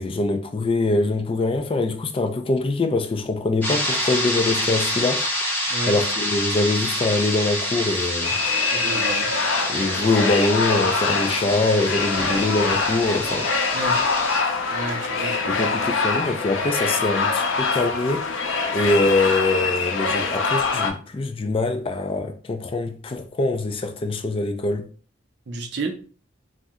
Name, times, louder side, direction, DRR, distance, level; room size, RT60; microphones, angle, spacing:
voice 1, 0.0-5.3 5.9-8.4 9.7-13.5 15.6-18.2 18.7-24.9, left 2 dB, 30° left, 0.3 m, -23 dB
sound 1, 3.6-14.4, equal, 10° left, 1.0 m, -27 dB
sound 2, 8.2-20.9, left 4 dB, 85° left, 0.5 m, -24 dB
voice 2, 8.7-9.3 13.7-14.0 14.7-15.7 25.5-26.0, right 2 dB, 60° right, 0.5 m, -31 dB
2.8 x 2.1 x 3.5 m
head